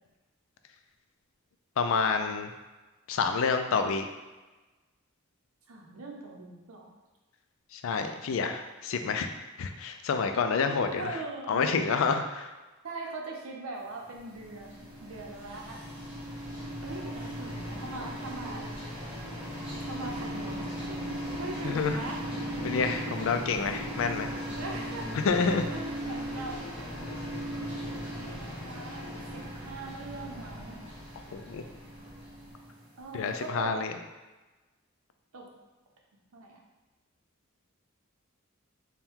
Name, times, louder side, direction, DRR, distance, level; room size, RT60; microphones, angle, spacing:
voice 1, 1.8-2.5 3.1-4.1 7.7-11.2 11.5-12.5 21.6-22.0 22.6-24.3 25.2-25.7 31.3-31.6 33.1-33.9, left 5 dB, 65° left, 7 dB, 0.3 m, -28 dB
voice 2, 5.7-6.9 10.6-11.9 12.8-15.8 16.8-19.1 19.8-22.2 24.5-25.2 25.7-26.6 28.2-29.1 29.3-30.8 33.0-33.8 35.3-35.5 36.3-36.6, right 2 dB, 85° right, 0 dB, 0.7 m, -41 dB
sound 1, 14.1-33.1, equal, 5° right, 0.8 m, -38 dB
4.3 x 2.2 x 3.6 m, 1.2 s
head